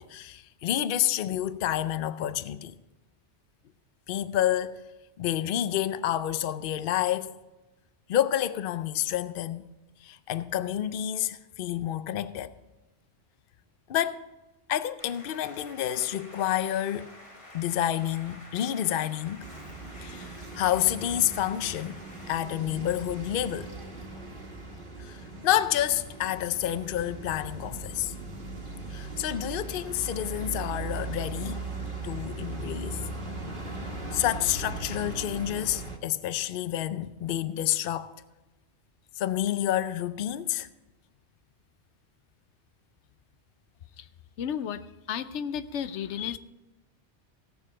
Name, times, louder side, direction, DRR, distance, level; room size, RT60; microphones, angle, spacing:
voice 1, 0.0-2.7 4.1-4.8 5.2-7.4 8.1-9.7 10.0-12.5 13.9-14.2 14.7-17.1 17.5-19.5 20.0-22.0 22.3-23.7 25.0-28.1 28.9-31.6 32.0-33.0 34.1-38.1 39.2-40.7, left 12 dB, 60° left, 0.7 m, -29 dB
sound 1, 15.0-22.4, left 1 dB, 30° left, 1.5 m, -50 dB
sound 2, 19.4-36.0, right 3 dB, 50° right, 1.6 m, -38 dB
voice 2, 44.4-46.4, left 8 dB, 85° left, 0.9 m, -33 dB
16.5 x 7.0 x 5.0 m
omnidirectional pair, 1.2 m